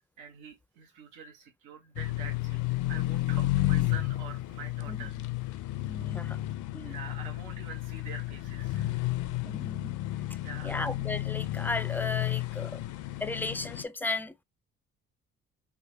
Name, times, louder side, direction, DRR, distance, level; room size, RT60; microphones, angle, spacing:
voice 1, 0.0-2.6 2.9-5.2 5.6-5.7 6.8-9.1 10.4-10.8, right 6 dB, 90° right, 1.1 m, -46 dB
sound 1, 2.0-13.8, left 16 dB, 80° left, 0.5 m, -32 dB
voice 2, 5.9-6.4 6.7-7.0 9.4-10.0 10.6-12.8 13.2-14.4, left 2 dB, 5° left, 0.4 m, -35 dB
3.5 x 2.2 x 3.2 m
cardioid pair, 90°, 30 cm